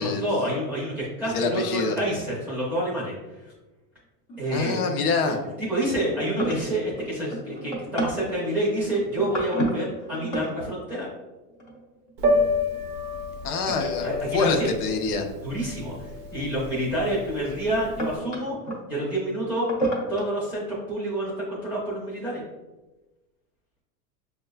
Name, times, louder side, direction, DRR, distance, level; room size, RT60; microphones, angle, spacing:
voice 1, 0.0-3.1 3.4-3.5 4.4-4.8 5.3-11.1 13.8-14.7 15.4-18.6 18.9-19.7 20.1-20.6 20.9-22.4, right 1 dB, 5° right, -7 dB, 0.7 m, -28 dB
voice 2, 1.3-2.0 4.5-5.4 13.4-15.3, left 4 dB, 75° left, 4 dB, 0.7 m, -26 dB
sound 1, 2.2-2.3 4.3-4.8 5.1-5.4 5.9-10.5 11.6-12.1 14.1-14.2 16.5-16.6 17.4-18.8 19.5-20.3, right 1 dB, 30° left, 0.5 m, -32 dB
Piano, 12.2-18.1, left 2 dB, 45° right, 0.5 m, -28 dB
6.3 x 2.2 x 2.2 m, 1.1 s
supercardioid pair, 175°, 44 cm